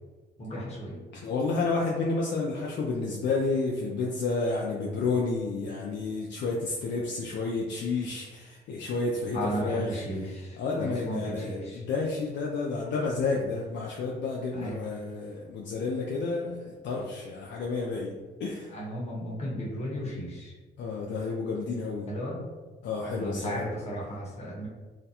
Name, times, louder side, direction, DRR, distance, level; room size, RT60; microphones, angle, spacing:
voice 1, 0.4-1.0 9.3-11.8 14.6-14.8 18.7-20.5 22.1-22.4 23.1-24.7, equal, 30° left, -5 dB, 0.9 m, -35 dB
voice 2, 1.2-10.0 10.6-18.1 18.4-18.7 20.8-22.1 22.8-23.6, left 3 dB, 65° left, -2 dB, 0.4 m, -30 dB
2.3 x 2.1 x 2.8 m, 1.3 s
cardioid pair, 90°, 20 cm